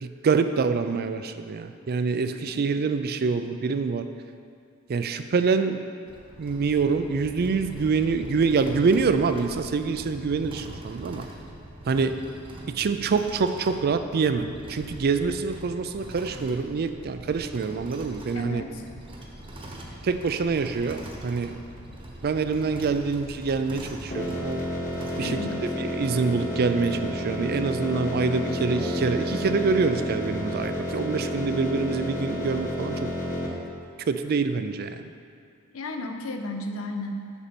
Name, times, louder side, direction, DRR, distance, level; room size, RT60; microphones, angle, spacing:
voice 1, 0.0-4.1 4.9-5.8 6.4-11.3 11.9-12.2 12.7-18.6 20.0-21.6 22.2-24.6 25.2-25.4 25.8-33.1 34.1-35.0, right 4 dB, 45° right, 9 dB, 0.4 m, -26 dB
sound 1, 6.1-25.5, right 1 dB, 25° right, 1.0 m, -42 dB
voice 2, 18.3-18.8 25.2-25.7 35.7-37.3, left 2 dB, 65° left, 5 dB, 0.7 m, -33 dB
sound 2, 24.1-33.5, equal, 35° left, 1.3 m, -30 dB
7.2 x 5.3 x 6.9 m, 2.3 s
head